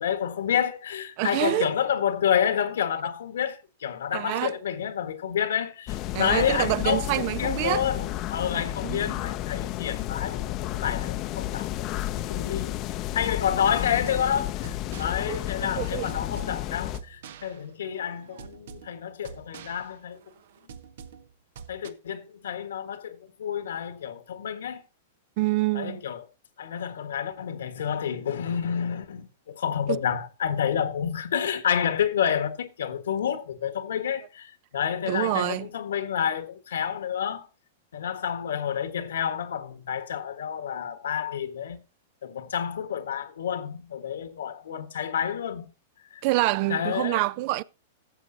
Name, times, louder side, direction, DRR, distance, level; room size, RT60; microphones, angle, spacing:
voice 1, 0.0-11.7 12.1-12.8 13.1-20.2 21.7-24.8 25.7-26.3 26.6-37.5 37.9-41.8 42.2-45.7 46.1-46.2 46.7-47.2, left 8 dB, 90° left, 1.5 m, -29 dB
voice 2, 1.2-1.7 4.1-4.5 6.1-7.8 8.8-9.2 15.3-15.4 15.8-16.1 25.4-26.0 29.9-30.0 35.1-35.7 46.2-47.6, right 18 dB, 50° right, 0.4 m, -26 dB
sound 1, 5.9-17.0, left 14 dB, 35° left, 0.6 m, -32 dB
sound 2, 13.6-21.9, right 7 dB, 70° right, 0.9 m, -47 dB
14.5 x 7.5 x 2.7 m
hypercardioid pair, 140°, 0 cm